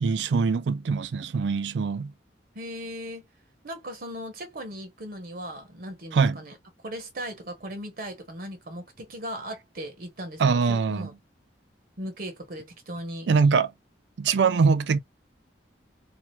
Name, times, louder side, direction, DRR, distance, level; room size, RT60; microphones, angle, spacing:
voice 1, 0.0-2.1 6.1-6.4 10.4-11.1 13.3-13.7 14.2-15.0, right 5 dB, 85° right, 0.4 m, -23 dB
voice 2, 2.5-3.3 3.6-6.6 6.8-11.1 12.0-13.3, equal, 55° right, 0.9 m, -38 dB
2.8 x 2.4 x 2.9 m
head